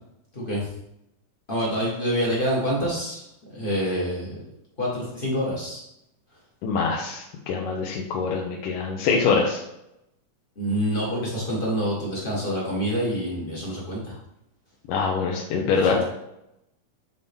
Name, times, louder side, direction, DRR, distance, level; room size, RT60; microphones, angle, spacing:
voice 1, 0.3-0.7 1.5-3.2 3.5-4.4 4.8-5.8 10.6-14.2 15.7-16.0, equal, 55° left, -5 dB, 0.5 m, -27 dB
voice 2, 6.6-9.6 14.9-16.0, left 5 dB, 85° left, -1 dB, 2.4 m, -24 dB
9.4 x 4.0 x 3.5 m, 0.84 s
omnidirectional pair, 3.7 m